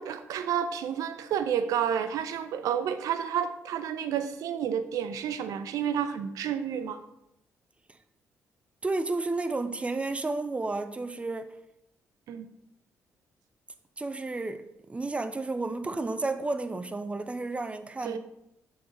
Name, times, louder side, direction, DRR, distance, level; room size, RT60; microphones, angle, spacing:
voice 1, 0.0-7.0 12.3-12.5 18.0-18.2, right 8 dB, 75° right, 0.4 m, -30 dB
voice 2, 8.8-11.5 14.0-18.2, right 3 dB, 20° right, 0.5 m, -32 dB
7.6 x 3.9 x 3.8 m
supercardioid pair, 60°, 6 cm